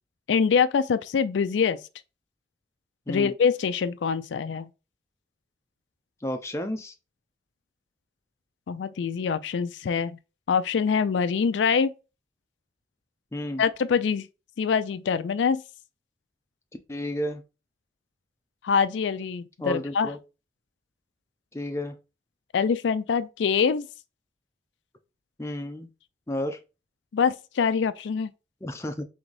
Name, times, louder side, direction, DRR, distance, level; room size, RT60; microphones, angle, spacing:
voice 1, 0.3-1.8 3.1-4.7 8.7-10.2 10.5-11.9 13.6-14.3 14.6-15.6 18.6-20.1 22.5-23.9 27.1-28.3, left 6 dB, 90° left, 0.4 m, -24 dB
voice 2, 6.2-6.9 13.3-13.6 16.9-17.4 19.6-20.2 21.5-22.0 25.4-25.9 26.3-26.6 28.6-29.1, left 1 dB, 15° left, 0.5 m, -31 dB
3.9 x 3.5 x 3.2 m
head